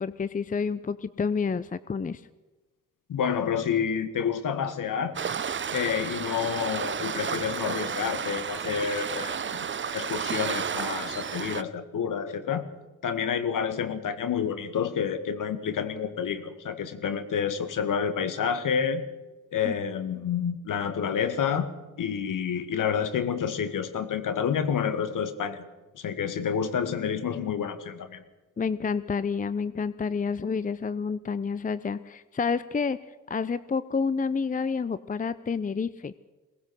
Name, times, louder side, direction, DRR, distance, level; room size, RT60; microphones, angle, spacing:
voice 1, 0.0-2.2 19.6-19.7 28.6-33.0 33.3-36.1, left 5 dB, 20° left, 16 dB, 0.7 m, -29 dB
voice 2, 3.1-5.1 5.7-12.7 13.0-19.0 19.5-21.7 22.0-25.7 25.9-28.2, left 7 dB, 55° left, 11 dB, 2.0 m, -29 dB
Waves surf, 5.2-11.6, right 7 dB, 30° right, 0.8 m, -32 dB
22.0 x 18.5 x 6.4 m, 1.2 s
hypercardioid pair, 45°, 37 cm